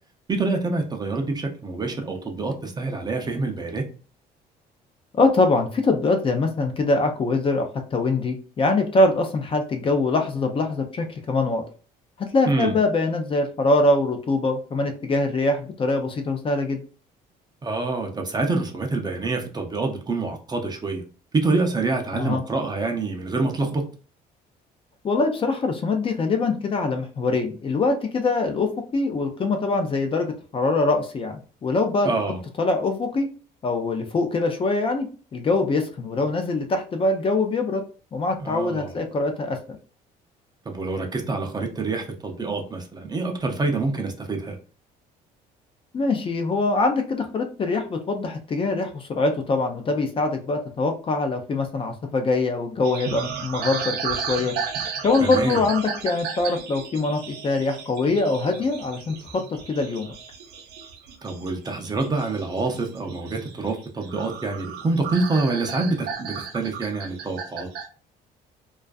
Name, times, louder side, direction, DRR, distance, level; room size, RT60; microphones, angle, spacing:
voice 1, 0.3-3.9 12.5-12.8 17.6-21.0 21.3-23.9 32.0-32.4 38.4-39.0 40.7-44.6 55.2-55.6 61.2-67.7, right 3 dB, 25° right, 3 dB, 0.5 m, -26 dB
voice 2, 5.1-11.6 12.2-16.8 22.1-22.4 25.0-31.3 31.6-32.1 32.6-33.3 33.6-35.1 35.3-37.8 38.1-39.6 45.9-54.5 55.0-60.1, left 3 dB, 30° left, 4 dB, 0.4 m, -23 dB
sound 1, 52.8-67.9, right 7 dB, 75° right, 0.5 m, -34 dB
2.4 x 2.3 x 2.3 m, 0.38 s
cardioid pair, 110°, 17 cm